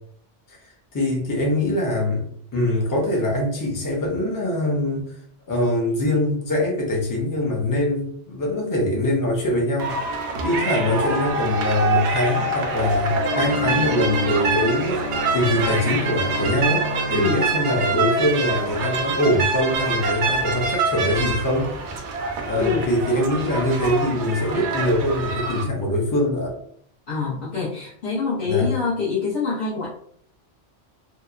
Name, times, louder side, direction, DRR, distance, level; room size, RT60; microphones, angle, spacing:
voice 1, 0.9-2.2 2.5-5.1 5.5-10.0 10.4-15.0 15.3-21.7 22.4-26.6 28.4-28.7, left 1 dB, 25° left, -2 dB, 0.5 m, -23 dB
sound 1, 9.8-25.6, right 4 dB, 85° right, 0.9 m, -25 dB
Bowed string instrument, 13.0-17.7, left 2 dB, 85° left, 0.9 m, -29 dB
voice 2, 22.6-22.9 27.1-29.9, left 5 dB, 55° left, -9 dB, 0.9 m, -25 dB
2.8 x 2.1 x 2.4 m, 0.65 s
omnidirectional pair, 1.1 m